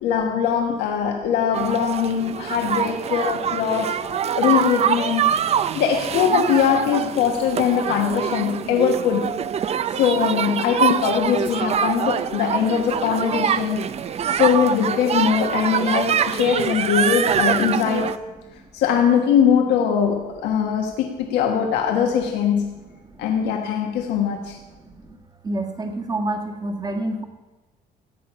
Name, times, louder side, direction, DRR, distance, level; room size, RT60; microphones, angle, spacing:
voice 1, 0.0-4.0 4.4-5.2 5.7-9.3 9.9-13.8 14.3-18.1 18.7-22.8 23.2-24.6, left 8 dB, 85° left, 2 dB, 1.2 m, -21 dB
sound 1, 1.5-18.2, right 8 dB, 40° right, 0.5 m, -24 dB
voice 2, 25.4-27.2, right 1 dB, 25° right, 4 dB, 1.6 m, -27 dB
14.5 x 8.6 x 6.1 m, 1.1 s
cardioid pair, 110°, 17 cm